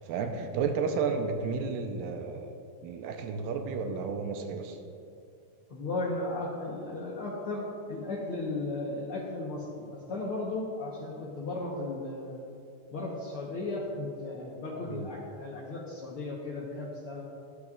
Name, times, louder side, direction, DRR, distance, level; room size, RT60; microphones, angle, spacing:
voice 1, 0.0-4.8 14.9-15.1, right 5 dB, 90° right, 5 dB, 2.4 m, -32 dB
voice 2, 5.7-12.4 12.9-17.2, left 2 dB, 75° left, -3 dB, 1.3 m, -35 dB
23.5 x 8.2 x 2.4 m, 2.5 s
omnidirectional pair, 4.0 m